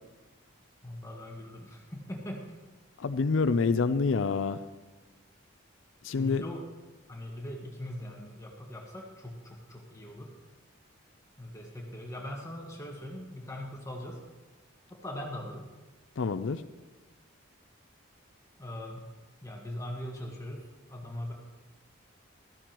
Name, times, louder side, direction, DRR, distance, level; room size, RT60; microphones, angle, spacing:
voice 1, 0.8-2.6 6.2-6.6 7.1-10.3 11.4-14.2 14.9-15.7 18.6-19.1 19.4-21.3, left 1 dB, 15° left, -1 dB, 1.6 m, -41 dB
voice 2, 3.0-4.6 6.0-6.4 16.2-16.6, left 4 dB, 65° left, 11 dB, 0.4 m, -27 dB
14.5 x 13.5 x 3.0 m, 1.2 s
head